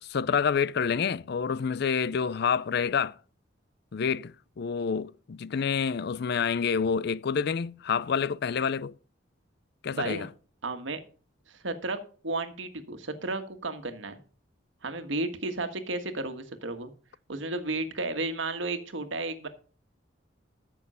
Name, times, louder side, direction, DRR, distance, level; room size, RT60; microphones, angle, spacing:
voice 1, 0.1-3.2 3.9-8.9 9.8-10.3, left 6 dB, 60° left, 0.4 m, -28 dB
voice 2, 9.9-10.3 10.6-11.0 11.5-12.0 12.2-14.2 14.8-16.9 17.3-19.5, right 2 dB, 85° right, 1.6 m, -33 dB
14.0 x 6.4 x 5.5 m
head